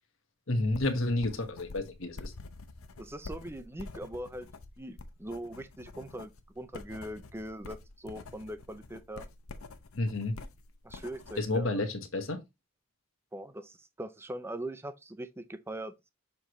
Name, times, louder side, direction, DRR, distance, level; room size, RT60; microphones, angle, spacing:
voice 1, 0.5-2.3 9.9-10.4 11.4-12.4, left 2 dB, 65° left, 1.4 m, -30 dB
sound 1, 0.7-11.6, left 3 dB, 90° left, 0.8 m, -47 dB
voice 2, 3.0-4.5 4.8-9.3 10.8-11.7 13.3-16.1, right 1 dB, 10° right, 0.5 m, -41 dB
7.1 x 4.7 x 3.0 m
head